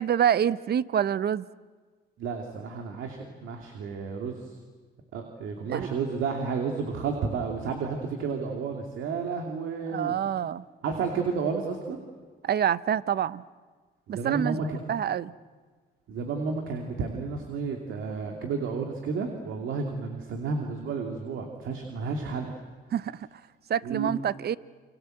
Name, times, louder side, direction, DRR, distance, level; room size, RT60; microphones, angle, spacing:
voice 1, 0.0-1.4 5.7-5.9 9.9-10.6 12.4-13.4 14.1-14.6 14.9-15.3 22.9-23.3 23.7-24.6, right 9 dB, 55° right, 17 dB, 0.8 m, -26 dB
voice 2, 2.2-4.5 5.1-10.1 10.8-12.0 14.1-14.8 16.1-22.5 23.8-24.1, right 5 dB, 80° right, 3 dB, 2.7 m, -31 dB
29.0 x 26.0 x 7.9 m, 1.5 s
cardioid pair, 90°, 20 cm